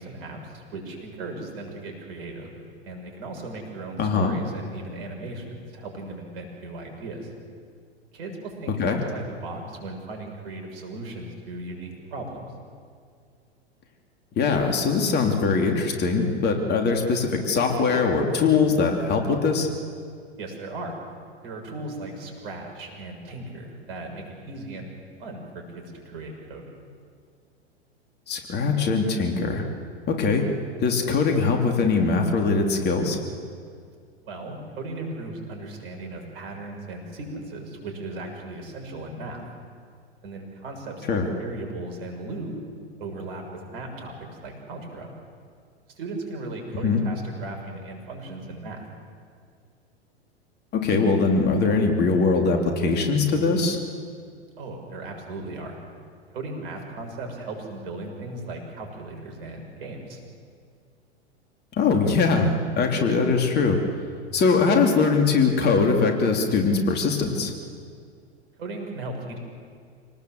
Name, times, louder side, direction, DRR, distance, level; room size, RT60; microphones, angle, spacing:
voice 1, 0.0-2.5 2.8-7.3 8.1-12.5 20.4-21.0 21.4-26.7 34.2-39.5 40.2-42.5 43.0-45.1 45.9-48.9 54.6-55.8 56.3-60.2 68.6-69.4, right 2 dB, 60° right, 3 dB, 7.1 m, -37 dB
voice 2, 4.0-4.3 8.8-9.0 14.4-19.7 28.3-29.6 30.1-30.4 30.8-33.2 41.1-41.3 46.8-47.0 50.7-53.8 61.7-63.8 64.3-67.5, left 4 dB, 30° left, 3 dB, 3.2 m, -22 dB
27.5 x 19.0 x 8.0 m, 2.1 s
figure-of-eight pair, 95°, 33 cm